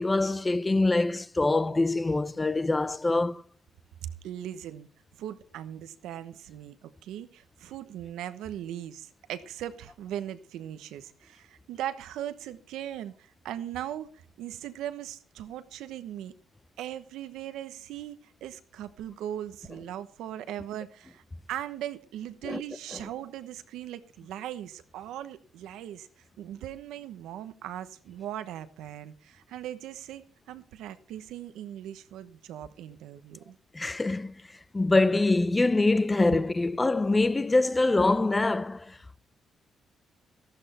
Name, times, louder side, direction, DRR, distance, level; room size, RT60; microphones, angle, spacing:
voice 1, 0.0-3.4 22.4-22.6 33.7-34.3 34.7-39.2, left 2 dB, 20° left, 0.6 m, -24 dB
voice 2, 4.0-4.9 5.2-16.3 16.8-21.2 21.5-26.1 26.4-33.6, right 11 dB, 90° right, 1.1 m, -39 dB
14.0 x 12.0 x 4.3 m
cardioid pair, 90°, 0 cm